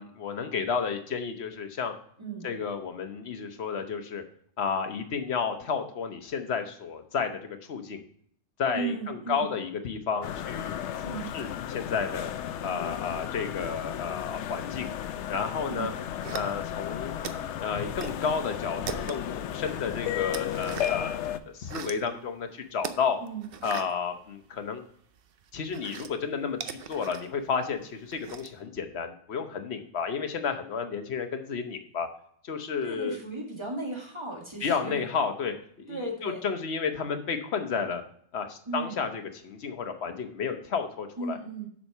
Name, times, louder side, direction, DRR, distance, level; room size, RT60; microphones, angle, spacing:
voice 1, 0.0-1.9 2.4-4.2 4.6-8.0 8.6-12.3 12.6-14.9 15.3-15.9 16.3-17.1 17.6-21.2 21.5-23.2 23.6-24.8 25.5-32.1 32.4-33.2 34.6-35.5 35.9-38.0 38.3-41.4, left 6 dB, 70° left, 7 dB, 1.2 m, -32 dB
voice 2, 8.7-9.5 11.0-11.4 15.7-16.0 23.2-23.5 32.8-35.0 35.9-36.4 38.7-39.1 41.2-41.7, right 3 dB, 25° right, -1 dB, 2.0 m, -36 dB
sound 1, 10.2-21.4, left 10 dB, 85° left, 0.9 m, -34 dB
sound 2, 16.2-16.9 17.2-18.2 18.5-19.4 19.8-21.1 21.5-22.1 22.8-24.8 25.1-28.6, right 7 dB, 60° right, 0.8 m, -40 dB
7.5 x 5.5 x 5.5 m, 0.63 s
omnidirectional pair, 1.1 m